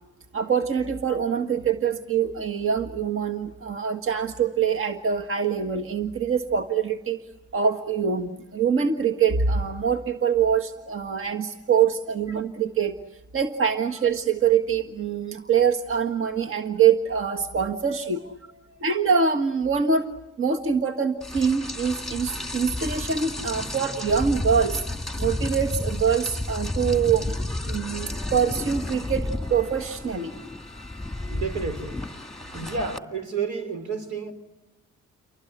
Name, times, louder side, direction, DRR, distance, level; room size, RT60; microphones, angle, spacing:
voice 1, 0.3-18.2 18.8-20.1 20.4-24.8 25.2-27.3 27.6-30.3 32.5-32.7, right 6 dB, 45° right, 4 dB, 1.6 m, -24 dB
Rain, 21.2-33.0, left 1 dB, ahead, 2.0 m, -32 dB
voice 2, 31.3-32.0 32.5-34.3, right 5 dB, 75° right, 8 dB, 4.8 m, -31 dB
29.5 x 24.0 x 8.2 m, 1.1 s
cardioid pair, 90°, 30 cm